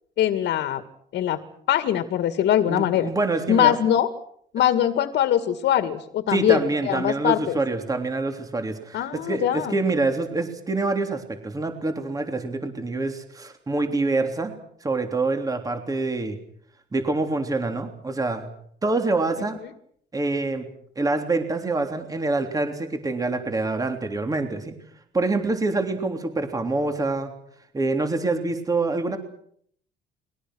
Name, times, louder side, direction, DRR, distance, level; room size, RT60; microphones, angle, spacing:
voice 1, 0.2-0.8 1.1-1.4 1.7-3.1 3.5-4.1 4.5-7.6 8.9-9.8, left 10 dB, 65° left, 9 dB, 2.2 m, -22 dB
voice 2, 2.7-3.8 6.3-14.5 14.8-16.4 16.9-18.5 18.8-19.6 20.1-20.7 21.0-24.8 25.1-27.3 27.7-29.2, right 3 dB, 20° right, 5 dB, 3.5 m, -26 dB
30.0 x 22.0 x 6.4 m, 0.66 s
cardioid pair, 125°, 19 cm